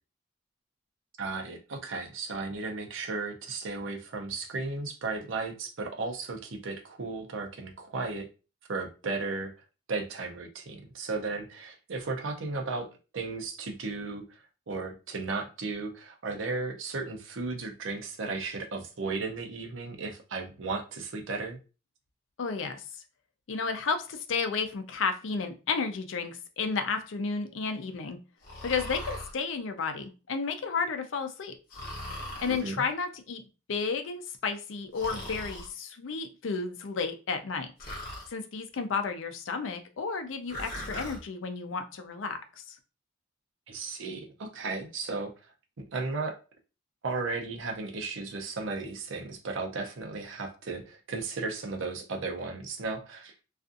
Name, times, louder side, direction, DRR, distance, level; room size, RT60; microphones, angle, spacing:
voice 1, 1.2-8.3 8.7-9.5 9.9-12.9 13.1-14.2 14.7-21.6 32.5-32.9 43.7-45.3 45.8-46.4 47.0-53.3, right 3 dB, 85° right, 3 dB, 0.6 m, -35 dB
voice 2, 22.4-22.8 23.5-28.2 28.6-31.6 32.4-33.4 33.7-37.7 38.3-42.8, left 5 dB, 80° left, 7 dB, 0.5 m, -32 dB
Breathing, 28.4-29.3 31.7-32.7 34.9-35.7 37.8-38.3 40.5-41.2, left 1 dB, 50° left, 0.9 m, -39 dB
2.5 x 2.4 x 2.4 m, 0.32 s
head